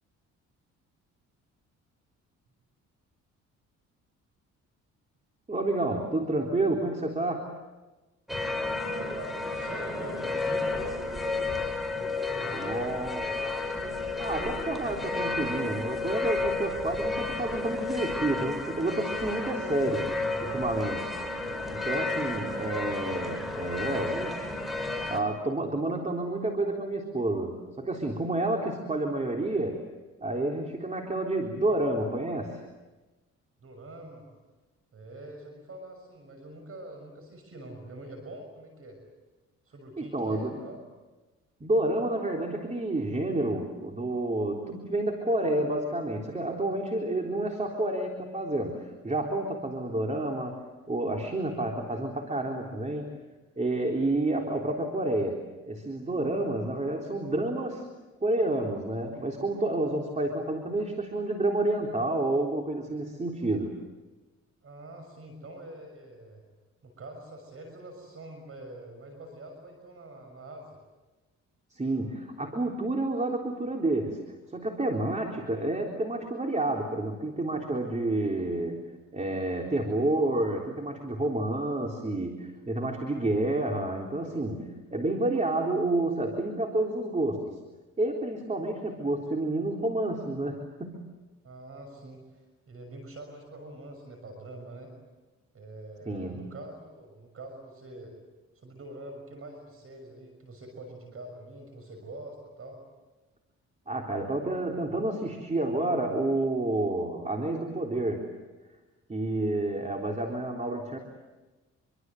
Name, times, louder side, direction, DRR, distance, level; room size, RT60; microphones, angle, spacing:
voice 1, 5.5-7.4 12.6-13.3 14.2-20.1 20.4-21.2 21.7-24.5 25.1-29.8 30.2-32.6 40.0-40.6 41.6-50.6 50.9-53.1 53.6-57.9 58.2-63.8 71.7-74.2 74.5-78.8 79.1-87.5 88.0-91.0 96.1-96.4 103.9-108.3 109.1-111.0, right 2 dB, 25° right, 1 dB, 3.8 m, -29 dB
sound 1, 8.3-25.2, left 3 dB, ahead, 6.0 m, -32 dB
voice 2, 8.9-11.6 12.0-12.8 22.3-22.8 33.6-34.2 34.9-39.0 39.7-40.8 64.6-66.4 66.8-70.8 91.4-94.9 95.5-98.1 98.5-102.8, right 1 dB, 50° right, 4 dB, 6.4 m, -44 dB
27.0 x 24.5 x 8.0 m, 1.2 s
cardioid pair, 90°, 30 cm